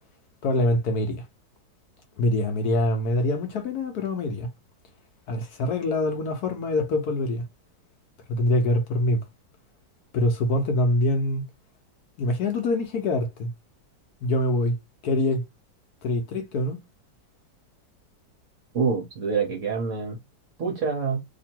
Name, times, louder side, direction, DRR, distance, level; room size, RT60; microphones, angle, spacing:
voice 1, 0.4-1.2 2.2-4.5 5.3-7.5 8.3-9.2 10.1-11.4 12.2-13.5 14.2-14.8 15.0-15.4 16.0-16.8, left 1 dB, 65° left, 1.1 m, -24 dB
voice 2, 18.7-20.2 20.6-21.2, right 5 dB, 55° right, 0.9 m, -26 dB
2.9 x 2.7 x 4.3 m
omnidirectional pair, 2.0 m